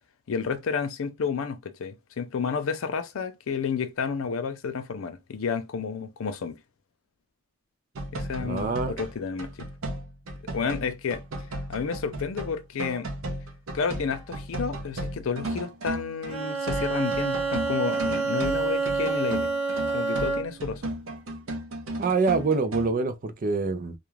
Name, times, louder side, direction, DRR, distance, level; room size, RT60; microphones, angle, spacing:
voice 1, 0.3-6.6 8.1-9.7 10.5-11.2 11.7-13.1 13.7-19.5 19.9-20.9, left 5 dB, 85° left, 0.5 m, -31 dB
sound 1, 7.9-16.4 16.7-22.9, right 1 dB, 90° right, 0.6 m, -35 dB
voice 2, 8.4-9.0 22.0-23.9, right 4 dB, 45° right, 0.4 m, -26 dB
Bowed string instrument, 16.3-20.7, right 4 dB, 30° right, 0.8 m, -28 dB
2.4 x 2.2 x 3.0 m
head